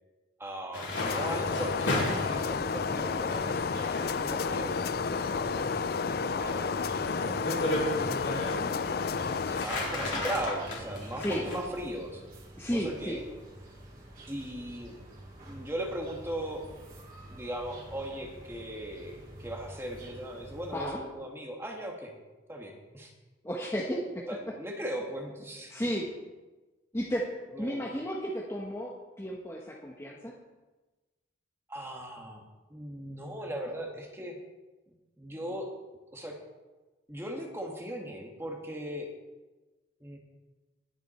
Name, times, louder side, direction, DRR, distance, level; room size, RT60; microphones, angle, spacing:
voice 1, 0.4-6.8 7.7-8.1 8.4-12.2 12.7-13.2 14.3-15.0 15.4-16.6 17.3-22.1 22.5-23.1 24.3-25.7 27.5-27.9 31.7-32.4 32.7-34.4 35.2-35.7 36.1-36.4 37.1-39.1 40.0-40.2, right 1 dB, 15° right, 0 dB, 1.8 m, -38 dB
sound 1, 0.7-11.6, left 1 dB, 75° left, 3.9 m, -36 dB
sound 2, 1.0-9.7, left 5 dB, 50° left, 0.4 m, -31 dB
sound 3, 1.3-20.9, right 1 dB, 45° right, 3.9 m, -49 dB
voice 2, 12.6-13.2 20.7-21.0 23.4-24.2 25.7-26.1 26.9-27.3 27.6-30.3, equal, 15° left, -3 dB, 1.2 m, -33 dB
20.5 x 7.9 x 4.4 m, 1.2 s
head